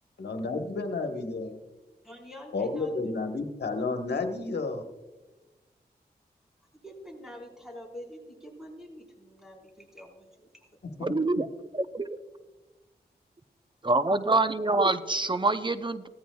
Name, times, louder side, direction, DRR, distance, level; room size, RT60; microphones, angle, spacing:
voice 1, 0.2-1.6 2.5-4.8 10.8-11.1, left 3 dB, 75° left, 4 dB, 1.2 m, -31 dB
voice 2, 2.0-3.1 6.7-10.7, left 1 dB, 5° right, 0 dB, 4.2 m, -46 dB
voice 3, 11.0-12.1 13.8-16.1, right 2 dB, 30° right, 11 dB, 0.6 m, -26 dB
16.5 x 14.0 x 2.3 m, 1.2 s
cardioid pair, 45°, 17 cm